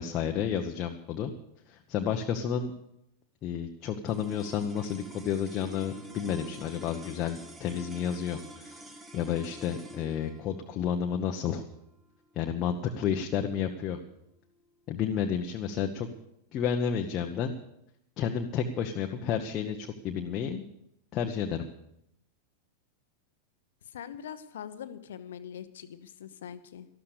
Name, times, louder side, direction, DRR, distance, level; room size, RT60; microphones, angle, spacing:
voice 1, 0.0-1.3 1.7-2.7 3.4-11.6 12.4-14.0 14.9-16.1 16.5-17.5 18.2-20.6 21.1-21.7, left 8 dB, 35° left, 3 dB, 1.1 m, -31 dB
sound 1, 4.0-14.5, equal, 10° right, 1.9 m, -48 dB
voice 2, 23.9-26.9, left 9 dB, 60° left, 13 dB, 1.0 m, -43 dB
13.0 x 12.5 x 6.8 m, 0.79 s
figure-of-eight pair, 90°, 0 cm